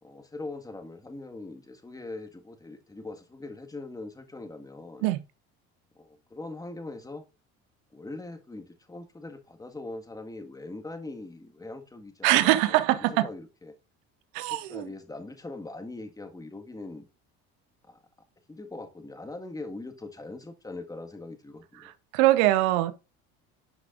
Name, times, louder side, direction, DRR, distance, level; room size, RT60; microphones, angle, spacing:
voice 1, 0.0-5.1 5.9-7.2 7.9-13.7 14.5-17.0 17.9-18.0 18.5-21.9, left 2 dB, 10° left, 1.6 m, -41 dB
voice 2, 12.2-13.3 14.3-14.9 22.1-22.9, right 16 dB, 80° right, 0.8 m, -22 dB
10.5 x 5.0 x 2.5 m
supercardioid pair, 90°, 31 cm